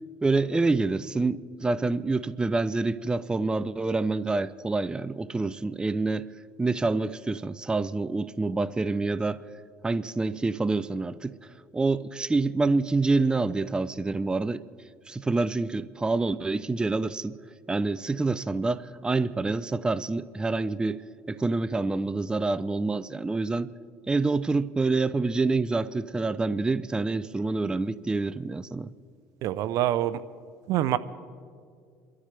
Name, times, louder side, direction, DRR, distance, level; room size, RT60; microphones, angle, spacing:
voice 1, 0.2-6.3 6.6-9.4 9.8-11.3 11.7-14.6 15.1-17.4 17.7-21.0 21.3-23.7 24.1-28.9, right 3 dB, 15° right, 16 dB, 0.5 m, -27 dB
voice 2, 29.4-30.2 30.7-31.0, right 13 dB, 65° right, 15 dB, 0.6 m, -25 dB
27.0 x 13.0 x 3.4 m, 2.2 s
supercardioid pair, 90°, 6 cm